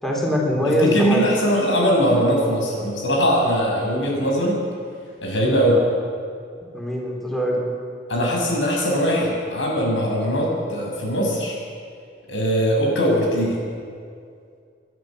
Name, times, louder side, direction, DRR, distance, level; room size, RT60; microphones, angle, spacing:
voice 1, 0.0-1.2 6.6-7.7, equal, ahead, -2 dB, 3.4 m, -22 dB
voice 2, 0.8-4.6 5.2-5.8 8.1-11.6 12.3-13.6, equal, 85° left, -1 dB, 6.4 m, -21 dB
29.5 x 11.5 x 7.6 m, 2.3 s
head